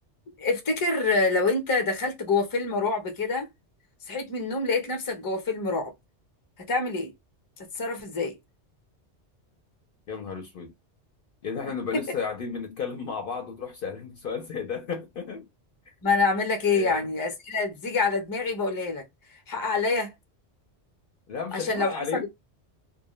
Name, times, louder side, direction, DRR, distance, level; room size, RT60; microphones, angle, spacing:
voice 1, 0.4-3.5 4.1-5.9 6.7-7.1 7.7-8.3 11.9-12.0 16.0-19.0 19.5-20.1 21.5-21.9, left 3 dB, 25° left, 0.6 m, -26 dB
voice 2, 10.1-10.7 11.4-15.5 16.7-17.1 21.3-22.3, left 5 dB, 60° left, 0.7 m, -33 dB
2.1 x 2.1 x 2.9 m
omnidirectional pair, 1.2 m